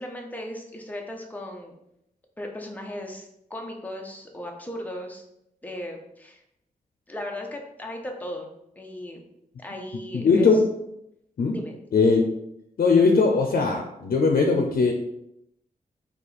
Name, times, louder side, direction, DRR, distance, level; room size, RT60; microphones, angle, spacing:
voice 1, 0.0-1.7 2.4-5.2 5.6-6.4 7.1-8.5 8.8-9.2 9.6-10.5 11.5-11.8, left 1 dB, 10° left, 1 dB, 0.7 m, -36 dB
voice 2, 10.1-10.6 11.4-11.5 11.9-12.2 12.8-14.9, left 4 dB, 80° left, 2 dB, 0.6 m, -19 dB
4.2 x 2.9 x 4.1 m, 0.80 s
wide cardioid pair, 135°, 15 cm